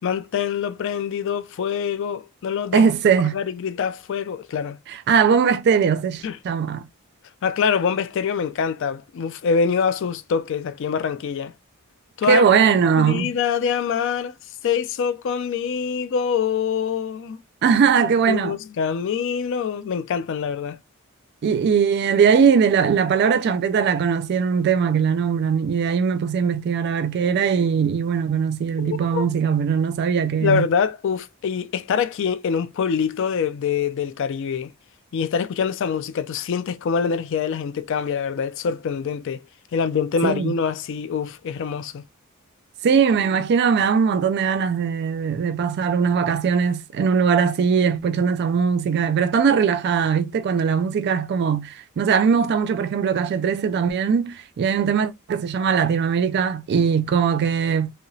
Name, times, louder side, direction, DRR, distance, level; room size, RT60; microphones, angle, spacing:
voice 1, 0.0-2.8 3.3-4.8 6.2-6.4 7.4-11.5 12.2-12.4 13.0-14.3 14.6-17.4 18.3-20.8 28.8-29.3 30.4-34.7 35.1-39.4 39.7-42.0, left 6 dB, 60° left, 0.3 m, -25 dB
voice 2, 2.7-3.4 4.9-6.8 12.3-13.3 17.6-18.6 21.4-30.7 40.2-40.6 42.8-57.9, right 6 dB, 50° right, 0.3 m, -20 dB
2.8 x 2.0 x 2.6 m
head